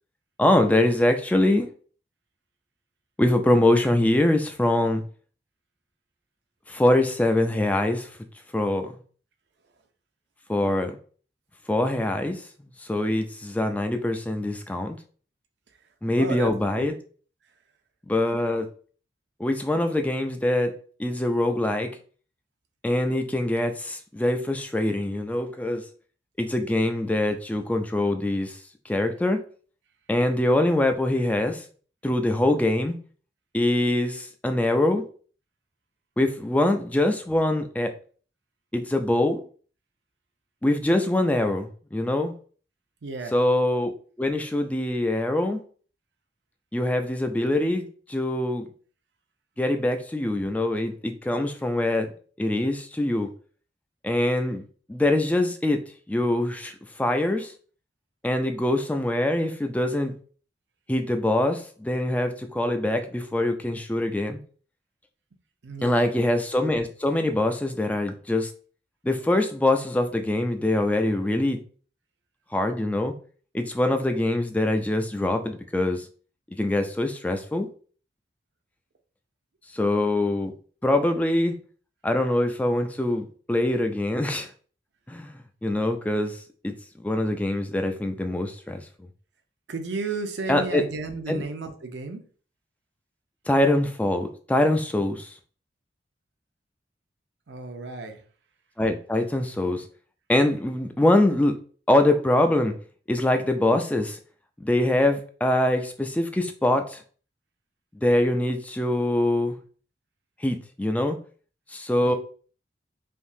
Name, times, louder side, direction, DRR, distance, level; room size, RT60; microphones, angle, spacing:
voice 1, 0.4-1.7 3.2-5.0 6.7-8.1 8.5-8.9 10.5-11.0 11.7-12.4 12.8-15.0 16.0-16.9 18.1-18.7 19.4-20.7 21.0-21.9 22.8-25.8 26.4-28.6 28.9-29.4 30.1-31.6 32.0-33.0 33.5-35.0 36.2-37.9 38.7-39.4 40.6-42.3 43.3-43.9 44.2-45.6 46.7-48.7 49.6-52.1 52.4-53.3 54.0-54.6 54.9-55.8 56.1-57.5 58.2-60.1 60.9-64.4 65.8-68.5 69.0-71.6 72.5-73.1 73.5-76.1 76.5-77.7 79.7-80.5 80.8-81.5 82.0-84.5 85.1-86.4 86.6-86.7 87.0-88.8 90.5-90.8 91.3-91.4 93.5-95.3 98.8-99.8 100.3-101.5 101.9-102.7 103.1-104.2 104.6-107.0 108.0-109.6 110.4-111.2 111.7-112.1, left 1 dB, 10° left, 0.3 m, -24 dB
voice 2, 16.2-16.9 43.0-43.4 65.6-66.1 89.7-92.2 97.5-98.2 112.0-112.1, right 4 dB, 80° right, 0.6 m, -33 dB
3.5 x 2.8 x 2.6 m
head